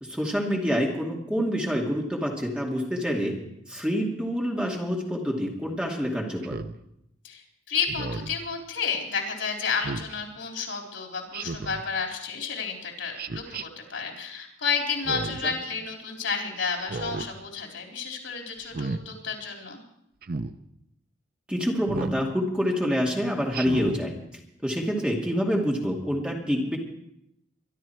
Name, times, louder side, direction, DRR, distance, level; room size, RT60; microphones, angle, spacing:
voice 1, 0.0-3.4 3.7-6.6 15.4-15.5 21.5-26.8, equal, 5° right, -1 dB, 2.4 m, -27 dB
Speech synthesizer, 6.4-6.8 7.9-8.4 9.8-10.1 11.3-11.8 13.2-13.6 14.9-15.5 16.8-17.3 18.6-19.0 20.2-20.5 21.9-22.2 23.5-24.0, right 3 dB, 50° right, 0.7 m, -33 dB
voice 2, 7.2-19.8, left 5 dB, 85° left, 1 dB, 3.8 m, -31 dB
23.5 x 12.0 x 4.6 m, 0.79 s
head